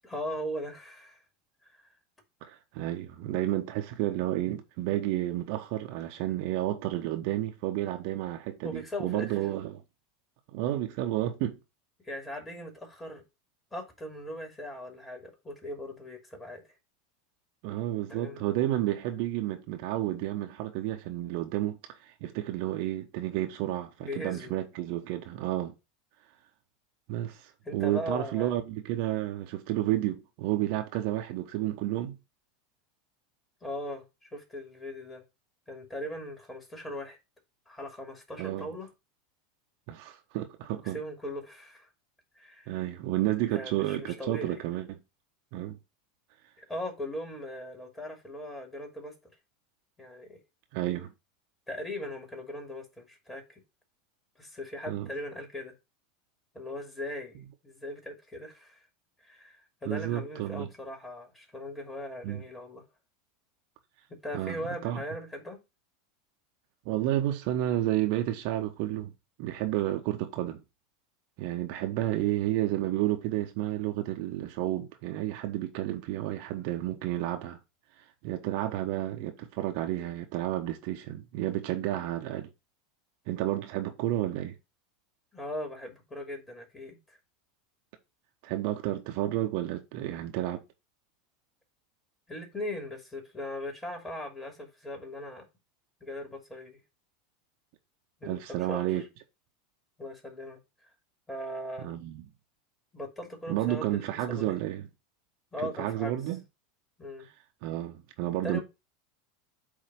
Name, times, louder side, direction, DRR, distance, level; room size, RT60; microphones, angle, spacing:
voice 1, 0.0-1.2 8.6-9.4 12.0-13.2 13.7-16.6 18.1-18.5 24.0-24.5 27.6-28.6 33.6-35.2 35.7-37.2 37.7-38.9 40.8-41.9 42.4-42.8 43.5-44.6 46.6-49.2 50.0-50.4 51.7-53.6 54.4-55.7 56.5-57.3 57.6-58.8 59.2-59.6 59.8-62.8 64.1-65.6 72.1-72.3 85.3-87.2 92.3-95.4 96.0-96.8 98.2-98.9 100.0-100.6 101.3-102.0 102.9-104.6 105.5-106.1 107.0-107.3 108.4-108.6, left 1 dB, 15° left, 2.7 m, -39 dB
voice 2, 2.4-9.8 10.5-11.6 17.6-25.7 27.1-32.2 38.4-38.7 39.9-41.0 42.7-45.0 45.5-45.8 50.7-51.1 54.9-55.1 59.8-60.7 62.2-62.4 64.3-65.0 66.8-69.1 69.4-70.6 71.4-77.6 78.2-82.5 83.3-84.5 88.4-90.6 98.2-99.0 101.8-102.2 103.5-104.9 105.6-106.4 107.6-108.6, right 14 dB, 55° right, 0.9 m, -31 dB
8.2 x 2.9 x 5.2 m
figure-of-eight pair, 80°, 0 cm